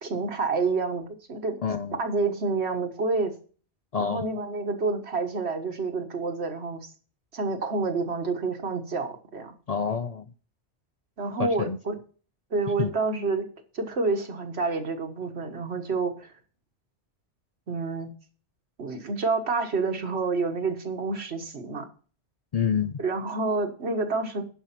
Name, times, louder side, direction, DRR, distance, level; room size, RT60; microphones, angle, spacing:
voice 1, 0.0-1.6 2.0-3.3 4.0-6.9 7.3-9.5 11.2-12.0 12.5-13.4 13.7-16.3 17.7-18.1 18.8-21.9 23.0-24.4, right 3 dB, 85° right, 5 dB, 1.7 m, -28 dB
voice 2, 1.6-2.0 3.9-4.3 9.7-10.3 11.4-11.8 12.8-12.9 22.5-23.0, left 6 dB, 50° left, 10 dB, 0.5 m, -27 dB
11.0 x 5.4 x 5.8 m, 0.40 s
omnidirectional pair, 1.1 m